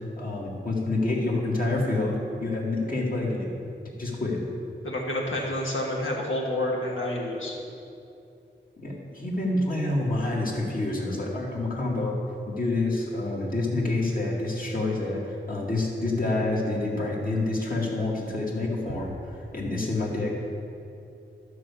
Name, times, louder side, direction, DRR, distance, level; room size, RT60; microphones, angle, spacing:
voice 1, 0.2-2.1 2.4-3.5 4.0-4.4 8.8-12.1 12.5-19.1 19.5-20.3, left 2 dB, 45° left, -3 dB, 2.1 m, -27 dB
voice 2, 4.8-7.5, left 1 dB, 85° left, -2 dB, 1.8 m, -29 dB
12.0 x 4.8 x 6.9 m, 2.7 s
wide cardioid pair, 65°, 20 cm